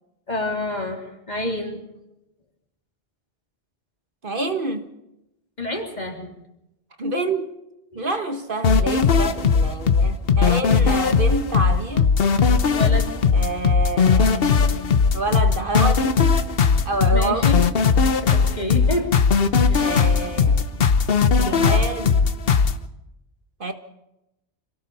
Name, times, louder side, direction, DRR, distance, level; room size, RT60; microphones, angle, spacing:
voice 1, 0.3-1.8 5.6-6.3 7.9-8.1 12.7-13.1 17.1-17.6 18.2-19.2 19.7-19.9, left 2 dB, 40° left, 1 dB, 3.3 m, -28 dB
voice 2, 4.2-4.9 7.0-7.5 7.9-12.1 13.3-14.5 14.9-16.4 16.8-17.7 19.7-20.9 21.4-22.2 23.6-23.7, right 2 dB, 50° right, 7 dB, 1.7 m, -28 dB
sound 1, 8.6-22.7, left 5 dB, 60° left, 1.1 m, -18 dB
26.5 x 18.0 x 5.5 m, 0.90 s
omnidirectional pair, 1.2 m